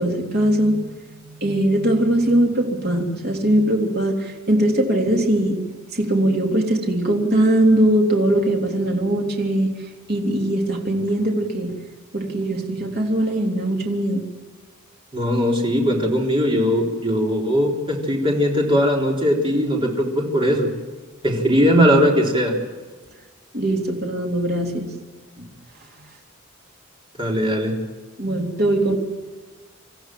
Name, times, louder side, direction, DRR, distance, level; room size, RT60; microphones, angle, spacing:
voice 1, 0.0-5.6 5.9-11.8 12.1-14.3 23.5-24.9 25.4-25.5 28.2-29.0, right 1 dB, 50° right, 1 dB, 3.4 m, -21 dB
voice 2, 15.1-20.7 21.2-22.5 27.2-27.7, equal, 25° right, -1 dB, 3.8 m, -19 dB
27.5 x 14.5 x 7.7 m, 1.3 s
head